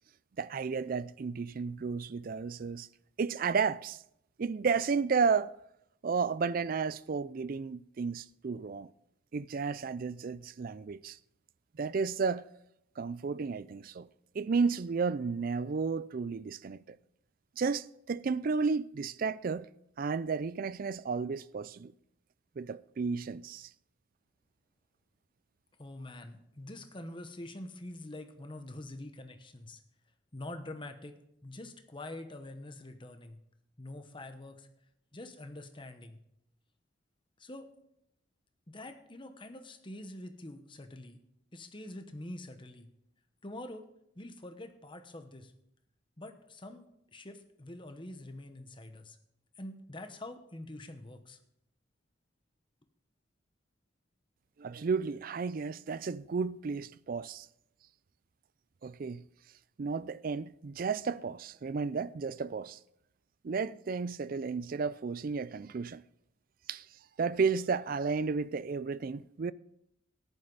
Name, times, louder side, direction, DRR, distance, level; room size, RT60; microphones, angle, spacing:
voice 1, 0.4-2.9 3.2-4.0 4.4-5.5 6.0-8.9 9.3-11.2 11.7-12.5 13.0-14.1 14.3-17.0 17.6-19.7 20.0-21.9 22.6-23.7 54.6-57.5 58.8-59.2 59.8-62.8 63.4-66.0 66.7-66.9 67.2-69.5, right 5 dB, 45° right, 0.4 m, -32 dB
voice 2, 25.8-29.8 30.3-31.1 31.4-33.4 33.8-34.7 35.1-36.2 37.4-37.7 38.7-41.2 41.5-42.9 43.4-43.9 44.2-45.5 46.2-49.2 49.6-51.4, left 1 dB, 25° left, 1.0 m, -45 dB
14.0 x 11.0 x 4.0 m
head